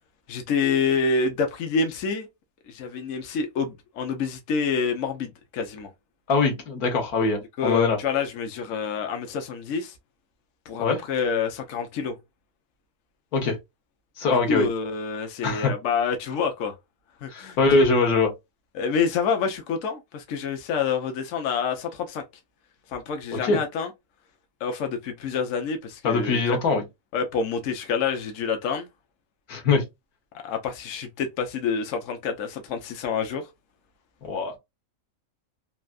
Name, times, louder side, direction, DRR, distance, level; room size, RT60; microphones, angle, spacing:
voice 1, 0.3-2.3 2.7-5.9 7.6-9.9 10.7-12.2 14.3-16.7 17.2-17.6 18.7-22.2 22.9-23.9 24.6-26.6 27.1-28.9 30.4-33.5, left 5 dB, 65° left, 1.0 m, -27 dB
voice 2, 6.3-8.0 10.8-11.0 13.3-13.6 14.2-14.7 15.4-15.7 17.3-18.3 23.3-23.6 26.0-26.8 29.5-29.8 34.2-34.6, left 3 dB, 90° left, 1.6 m, -22 dB
3.3 x 2.6 x 2.4 m
omnidirectional pair, 1.5 m